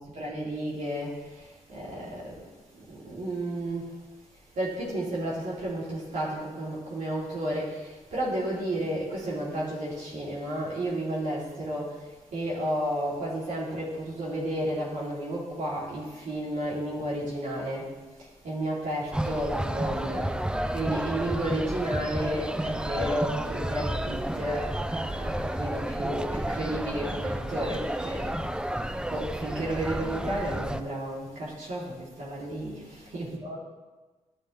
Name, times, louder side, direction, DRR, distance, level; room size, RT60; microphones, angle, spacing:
voice 1, 0.0-2.4 2.7-3.9 4.5-17.9 18.2-20.3 20.7-28.4 29.1-33.6, right 1 dB, 80° right, -7 dB, 2.8 m, -32 dB
sound 1, 19.1-30.8, right 1 dB, 5° right, 0.5 m, -31 dB
11.5 x 7.8 x 3.2 m, 1.2 s
cardioid pair, 55°, 13 cm